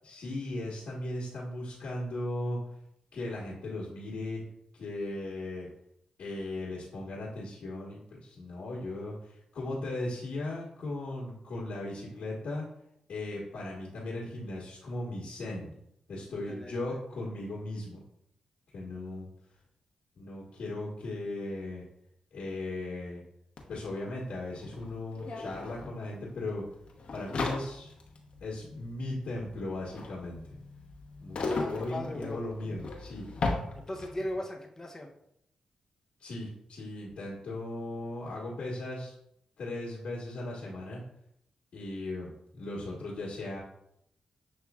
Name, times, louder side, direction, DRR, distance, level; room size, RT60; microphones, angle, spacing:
voice 1, 0.0-2.6 3.1-4.4 4.7-5.7 6.2-12.7 13.1-15.7 16.1-18.0 18.7-19.3 20.1-21.8 22.3-23.2 23.7-26.6 27.1-27.9 28.4-30.4 31.2-33.2 36.2-39.1 39.6-41.0 41.7-43.6, left 2 dB, 75° left, -7 dB, 1.3 m, -37 dB
voice 2, 16.5-16.8 31.6-32.4 33.7-35.1, left 1 dB, 25° left, 2 dB, 0.7 m, -38 dB
sound 1, 23.6-23.7 23.8-34.3, left 3 dB, 60° left, 0.9 m, -37 dB
7.1 x 3.0 x 2.3 m, 0.76 s
cardioid pair, 70°, 2 cm